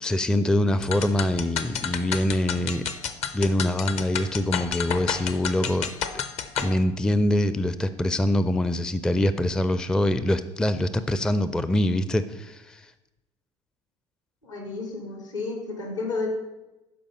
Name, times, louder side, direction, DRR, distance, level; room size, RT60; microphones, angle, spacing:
voice 1, 0.0-2.9 3.3-5.9 6.6-12.8, left 1 dB, 5° left, 13 dB, 0.4 m, -24 dB
sound 1, 0.8-6.7, left 7 dB, 45° left, 0.7 m, -31 dB
voice 2, 14.4-16.3, left 3 dB, 80° left, 1 dB, 2.8 m, -31 dB
12.0 x 5.1 x 5.4 m, 1.0 s
figure-of-eight pair, 65°, 16 cm